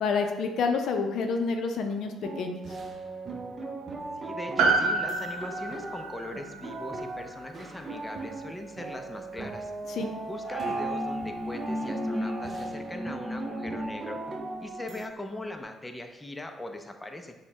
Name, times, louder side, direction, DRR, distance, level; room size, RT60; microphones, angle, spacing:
voice 1, 0.0-2.6 9.9-10.1, left 4 dB, 70° left, 5 dB, 0.5 m, -28 dB
sound 1, 2.2-15.1, right 3 dB, 45° right, 0.5 m, -39 dB
voice 2, 4.2-9.7 10.3-14.2 14.6-17.3, left 1 dB, 15° left, 4 dB, 0.4 m, -40 dB
Piano, 4.6-9.2 9.4-9.5, right 3 dB, 85° right, 0.6 m, -30 dB
sound 2, 10.4-15.0, equal, 5° right, 1.0 m, -34 dB
6.1 x 2.1 x 3.2 m, 1.1 s
cardioid pair, 90°, 0 cm